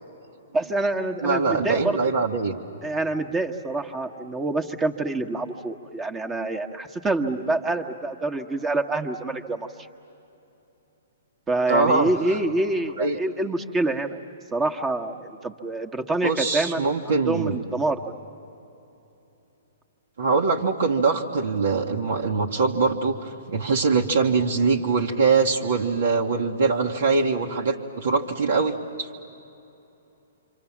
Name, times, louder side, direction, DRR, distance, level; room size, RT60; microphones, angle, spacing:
voice 1, 0.5-2.0 2.8-9.7 11.5-14.2 14.5-16.9 17.3-18.0, right 2 dB, 15° right, 5 dB, 1.4 m, -26 dB
voice 2, 1.2-2.6 11.7-12.1 13.0-13.2 16.2-17.6 20.2-29.3, right 4 dB, 65° right, -1 dB, 1.5 m, -23 dB
28.0 x 25.5 x 7.3 m, 2.9 s
figure-of-eight pair, 125°, 0 cm